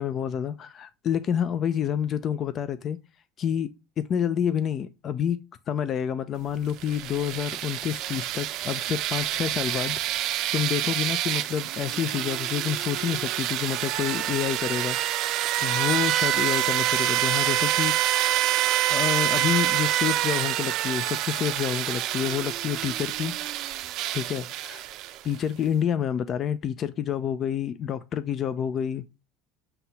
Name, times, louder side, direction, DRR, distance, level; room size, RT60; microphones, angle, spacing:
voice 1, 0.0-3.0 3.4-15.0 15.6-18.3 18.9-23.4 24.1-24.8 25.2-29.0, left 9 dB, 35° left, 0.5 m, -28 dB
sound 1, 6.7-25.4, right 14 dB, 50° right, 0.6 m, -27 dB
7.7 x 2.8 x 5.5 m
supercardioid pair, 140°, 0 cm